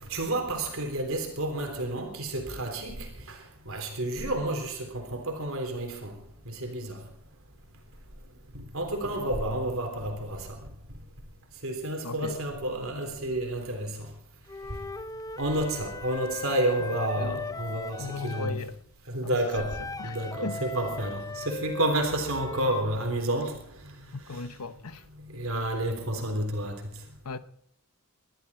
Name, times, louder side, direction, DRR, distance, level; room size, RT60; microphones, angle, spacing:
voice 1, 0.0-3.4 3.7-6.1 6.5-7.0 8.5-10.6 11.6-14.1 15.4-18.6 19.1-24.0 24.3-24.4 25.3-26.8, right 1 dB, 65° right, 3.6 m, -30 dB
voice 2, 12.0-12.4 17.2-17.4 18.0-18.8 19.2-19.7 20.0-20.2 20.4-20.7 24.1-25.0 27.2-27.4, left 4 dB, 85° left, 0.9 m, -36 dB
Wind instrument woodwind instrument, 14.5-18.6 19.5-22.9, left 3 dB, 15° left, 0.6 m, -38 dB
21.5 x 13.0 x 4.4 m
head